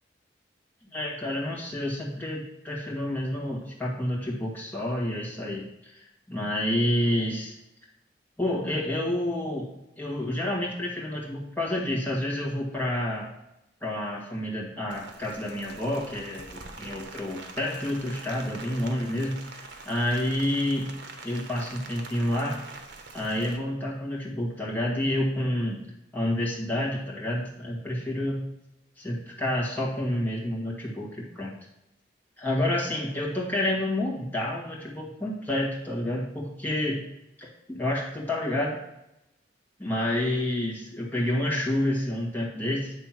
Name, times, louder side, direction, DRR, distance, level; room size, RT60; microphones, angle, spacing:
voice 1, 0.9-7.5 8.4-9.7 10.0-13.3 13.8-20.9 21.2-22.6 23.1-25.8 26.1-28.4 29.0-31.5 32.4-37.0 37.4-38.8 39.8-42.9, left 1 dB, 10° left, -4 dB, 1.7 m, -29 dB
Rain, 14.9-23.6, right 3 dB, 75° right, 0.9 m, -44 dB
9.0 x 3.3 x 5.9 m, 0.87 s
head